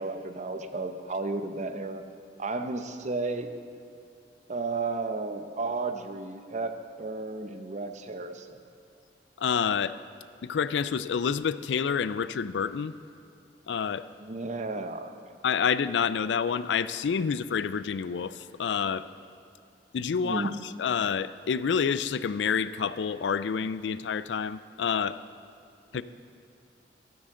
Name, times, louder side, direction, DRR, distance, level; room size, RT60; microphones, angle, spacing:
voice 1, 0.0-2.0 2.4-3.5 4.5-8.5 14.2-15.1 20.2-20.5 25.9-26.0, right 3 dB, 45° right, 8 dB, 0.7 m, -33 dB
voice 2, 9.4-10.0 10.4-12.9 13.7-14.1 15.4-19.1 19.9-20.5 20.8-25.2 25.9-26.0, left 6 dB, 90° left, 15 dB, 0.4 m, -28 dB
13.0 x 12.5 x 3.8 m, 2.6 s
head